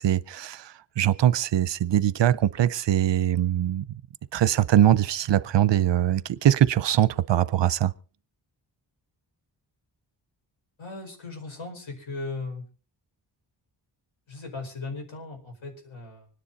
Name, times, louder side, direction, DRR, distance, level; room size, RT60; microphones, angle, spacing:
voice 1, 0.0-3.8 4.3-7.9, right 11 dB, 70° right, 0.6 m, -22 dB
voice 2, 10.8-12.6 14.3-16.3, left 3 dB, 90° left, 5.0 m, -37 dB
25.0 x 10.0 x 4.0 m
wide cardioid pair, 130°, 45 cm